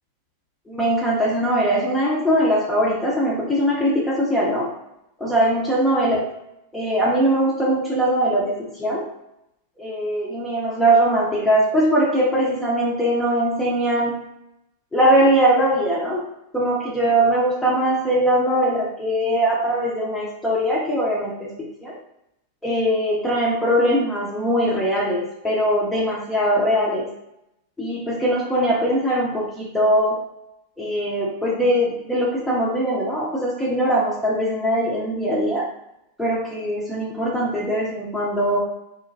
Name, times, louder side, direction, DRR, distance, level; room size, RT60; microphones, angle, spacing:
voice 1, 0.7-4.7 5.2-6.3 6.7-9.1 9.8-14.3 14.9-16.2 16.5-22.0 22.6-27.1 27.8-30.2 30.8-35.7 36.2-38.6, right 1 dB, 5° left, -6 dB, 0.7 m, -21 dB
3.0 x 2.1 x 2.6 m, 0.84 s
figure-of-eight pair, 90°, 0 cm